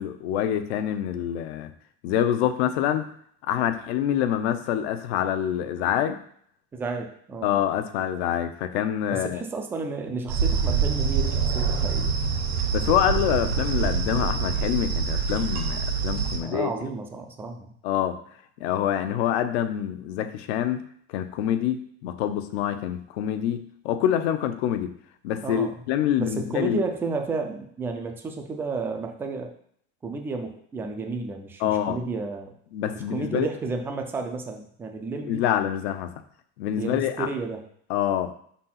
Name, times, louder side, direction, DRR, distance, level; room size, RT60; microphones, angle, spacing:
voice 1, 0.0-1.7 2.0-3.1 3.4-6.2 7.4-9.4 12.7-16.7 17.8-18.2 18.6-20.8 21.1-24.9 25.2-26.8 31.6-32.0 32.7-33.5 35.2-36.1 36.6-37.3 37.9-38.3, left 10 dB, 75° left, 9 dB, 0.8 m, -26 dB
voice 2, 6.7-7.5 9.1-12.2 16.4-17.7 25.4-25.7 26.2-29.5 30.0-32.5 32.9-35.4 36.8-37.6, right 4 dB, 5° right, 4 dB, 0.3 m, -32 dB
sound 1, 10.3-16.4, right 6 dB, 85° right, 1.9 m, -25 dB
5.4 x 4.2 x 5.7 m, 0.63 s
cardioid pair, 175°, 32 cm